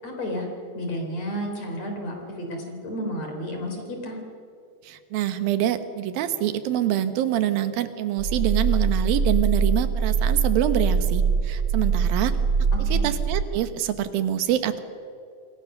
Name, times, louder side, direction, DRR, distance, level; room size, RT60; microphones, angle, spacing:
voice 1, 0.0-0.5 0.7-4.2 12.7-13.1, equal, 45° left, 3 dB, 4.7 m, -32 dB
voice 2, 4.8-12.3 12.9-14.8, right 11 dB, 70° right, 10 dB, 2.9 m, -25 dB
sound 1, 8.2-13.4, right 5 dB, 45° right, 2.0 m, -23 dB
28.0 x 21.0 x 6.7 m, 2.4 s
omnidirectional pair, 4.5 m